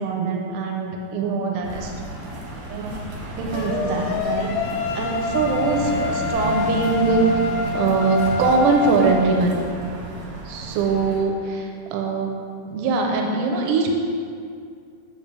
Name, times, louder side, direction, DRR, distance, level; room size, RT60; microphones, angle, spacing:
voice 1, 0.0-1.9 2.7-3.0 3.4-4.5 4.9-7.4 7.7-9.6 10.5-12.3 12.7-13.9, right 4 dB, 85° right, 1 dB, 2.7 m, -22 dB
sound 1, 1.6-11.2, right 2 dB, 65° right, 1.7 m, -33 dB
sound 2, 3.5-9.3, left 5 dB, 85° left, 2.8 m, -27 dB
6.8 x 6.6 x 3.3 m, 2.3 s
omnidirectional pair, 4.8 m